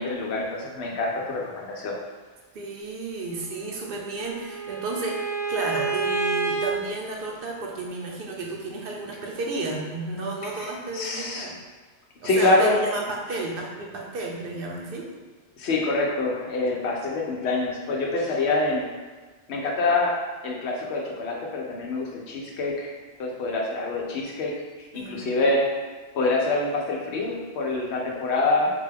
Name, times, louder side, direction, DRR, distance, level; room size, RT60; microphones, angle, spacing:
voice 1, 0.0-2.0 10.6-10.7 10.9-11.5 12.2-12.7 15.6-18.9 19.5-20.1 20.4-22.9 23.2-25.7 26.1-28.7, left 2 dB, 75° left, -1 dB, 0.9 m, -25 dB
voice 2, 2.5-11.5 12.2-15.1 24.9-25.3, right 2 dB, 60° right, -1 dB, 0.8 m, -32 dB
Bowed string instrument, 3.6-6.7, right 4 dB, 40° left, 0.9 m, -29 dB
3.9 x 2.2 x 3.3 m, 1.4 s
omnidirectional pair, 1.1 m